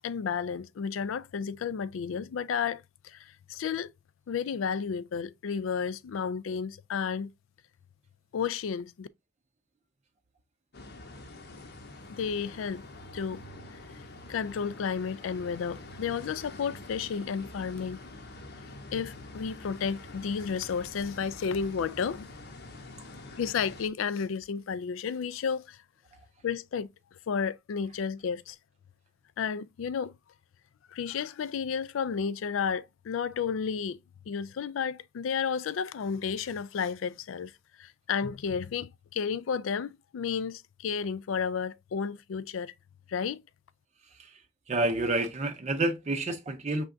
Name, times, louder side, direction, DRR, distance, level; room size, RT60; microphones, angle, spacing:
voice 1, 0.0-3.9 4.3-7.3 8.3-9.1 12.1-12.9 13.1-13.4 14.3-18.0 18.9-22.3 23.3-25.8 26.4-26.9 27.3-28.6 29.4-30.1 30.9-34.0 34.3-37.5 37.8-42.7 43.1-43.4, left 6 dB, 80° left, 0.4 m, -32 dB
sound 1, 10.7-23.9, left 2 dB, 55° left, 0.8 m, -46 dB
voice 2, 44.7-46.8, right 2 dB, 35° right, 0.5 m, -29 dB
5.6 x 3.4 x 2.5 m
head